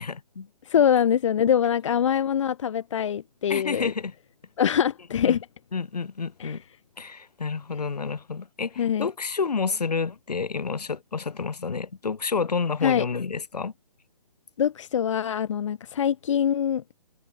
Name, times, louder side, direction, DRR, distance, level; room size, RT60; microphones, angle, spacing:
voice 1, 0.0-0.5 3.5-4.1 5.2-5.4 5.7-6.6 7.0-13.7, left 5 dB, 70° left, 6.4 m, -29 dB
voice 2, 0.6-3.9 4.6-5.4 6.4-6.6 8.8-9.1 12.8-13.1 14.6-16.8, left 8 dB, 50° left, 2.0 m, -24 dB
hypercardioid pair, 150°, 21 cm